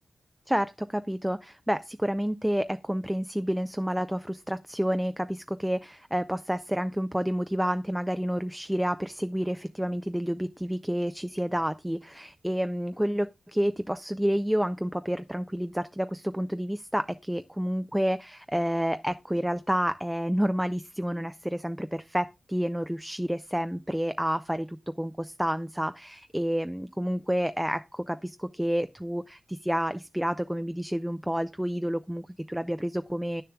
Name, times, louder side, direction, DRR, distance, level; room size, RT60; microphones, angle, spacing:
voice 1, 0.5-33.4, equal, 5° right, 0.3 m, -29 dB
10.0 x 6.8 x 2.2 m
wide cardioid pair, 130°, 0 cm